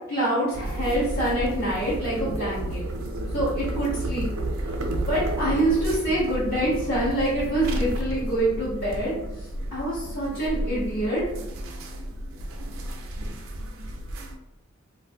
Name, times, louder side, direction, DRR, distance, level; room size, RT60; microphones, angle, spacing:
voice 1, 0.1-2.8 3.3-4.3 5.1-11.2, right 1 dB, 45° left, -13 dB, 1.1 m, -26 dB
sound 1, 0.5-14.4, right 1 dB, 75° right, 0.4 m, -31 dB
2.5 x 2.1 x 2.7 m, 0.92 s
head